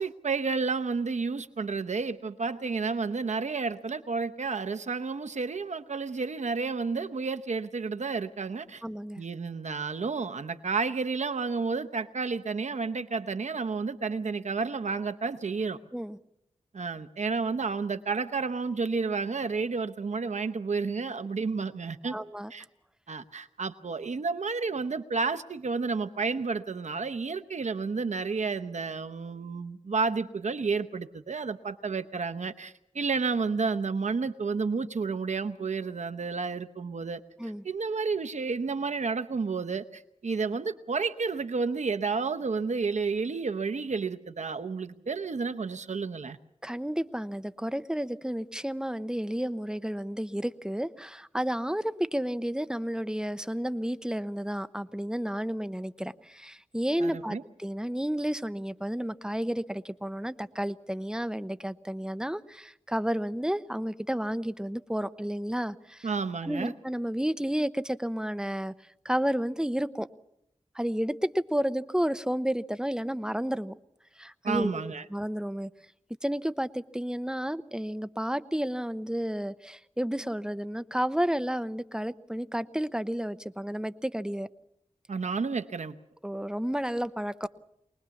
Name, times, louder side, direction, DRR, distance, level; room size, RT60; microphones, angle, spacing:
voice 1, 0.0-8.8 9.2-15.8 16.7-22.2 22.5-22.6 23.1-46.4 57.0-57.4 66.0-66.7 74.4-75.0 85.1-85.9, right 4 dB, 80° right, 10 dB, 0.9 m, -31 dB
voice 2, 8.8-9.2 15.9-16.2 22.0-22.5 37.4-37.6 46.6-66.1 66.4-68.7 69.0-70.1 70.7-73.7 74.2-75.7 76.2-84.5 86.2-87.5, equal, 5° right, 14 dB, 0.8 m, -31 dB
24.0 x 20.0 x 7.1 m, 0.76 s
wide cardioid pair, 65°, 12 cm